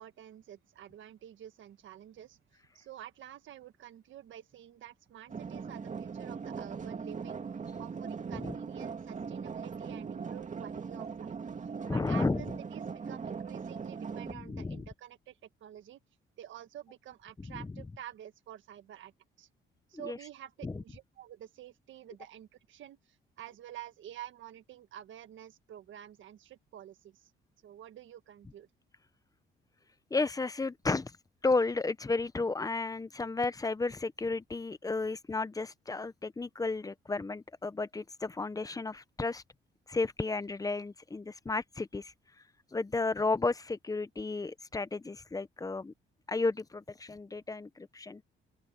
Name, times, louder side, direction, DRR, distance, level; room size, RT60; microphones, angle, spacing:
voice 1, 0.0-7.4 7.8-11.3 11.9-16.0 16.4-19.1 19.4-19.5 19.9-27.3 27.6-28.7, right 12 dB, 75° right, 1.6 m, -49 dB
sound 1, 5.3-14.3, right 5 dB, 40° right, 2.3 m, -40 dB
voice 2, 11.9-12.4 14.3-14.8 17.5-17.7 19.9-20.2 20.6-20.7 30.1-31.1 31.4-39.4 39.9-42.1 42.7-45.9 46.3-48.2, left 3 dB, 15° left, 0.9 m, -33 dB
open air
cardioid pair, 90°, 20 cm